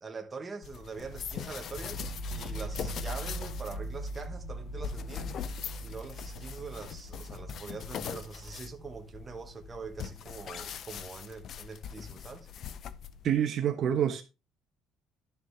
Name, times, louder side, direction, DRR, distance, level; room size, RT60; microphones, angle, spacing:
voice 1, 0.0-5.3 5.8-12.5, right 4 dB, 15° right, 1.2 m, -43 dB
sound 1, 0.6-13.4, left 8 dB, 40° left, 0.5 m, -42 dB
sound 2, 1.0-10.8, right 1 dB, 60° left, 2.1 m, -42 dB
voice 2, 13.2-14.2, right 9 dB, 40° right, 1.0 m, -27 dB
11.5 x 6.8 x 3.4 m
cardioid pair, 170°, 0 cm